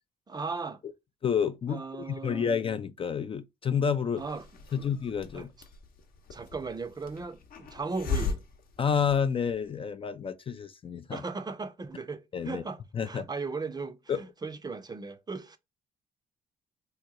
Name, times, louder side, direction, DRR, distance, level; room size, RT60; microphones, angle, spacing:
voice 1, 0.3-0.8 1.7-2.5 4.2-4.5 4.8-4.9 5.3-5.5 6.3-8.4 11.1-15.6, right 4 dB, 25° right, 0.5 m, -37 dB
voice 2, 1.2-1.8 2.2-4.2 4.7-5.5 8.8-11.2 12.3-12.6 12.9-13.2 14.1-14.2, left 7 dB, 35° left, 0.3 m, -29 dB
Hiss, 4.2-9.7, left 5 dB, 60° left, 0.8 m, -38 dB
2.9 x 2.2 x 3.7 m
supercardioid pair, 70°, 17 cm